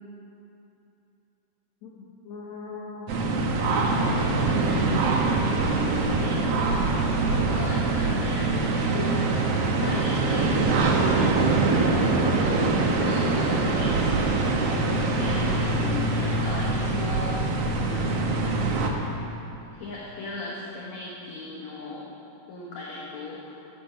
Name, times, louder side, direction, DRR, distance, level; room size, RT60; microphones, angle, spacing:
voice 1, 1.8-3.2 5.5-6.9 7.3-9.2 9.6-17.4 17.7-18.3 19.7-22.2 22.5-23.6, left 3 dB, 60° left, -5 dB, 2.3 m, -37 dB
sound 1, 3.1-18.9, right 3 dB, 90° right, 1.3 m, -24 dB
13.5 x 8.4 x 7.3 m, 2.9 s
omnidirectional pair, 4.5 m